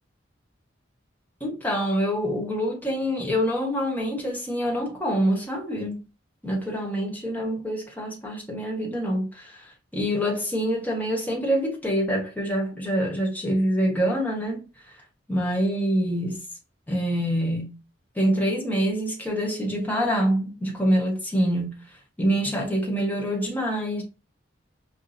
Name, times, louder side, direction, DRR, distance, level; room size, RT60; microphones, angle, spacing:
voice 1, 1.4-6.0 6.4-9.7 9.9-14.7 15.3-16.4 16.9-17.8 18.1-21.8 22.2-24.0, equal, 10° left, 1.1 m, -25 dB
5.8 x 2.2 x 2.7 m
head